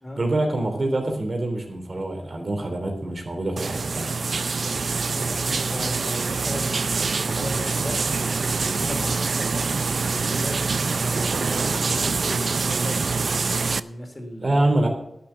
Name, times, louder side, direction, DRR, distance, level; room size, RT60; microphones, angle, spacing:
voice 1, 0.2-4.1 14.4-14.9, right 2 dB, 50° right, 3 dB, 3.2 m, -25 dB
sound 1, 3.6-13.8, right 4 dB, 70° right, 0.4 m, -25 dB
voice 2, 5.1-8.0 8.4-13.1 13.7-14.7, left 1 dB, 30° left, 4 dB, 3.0 m, -36 dB
11.5 x 7.6 x 7.1 m, 0.80 s
cardioid pair, 55°, 0 cm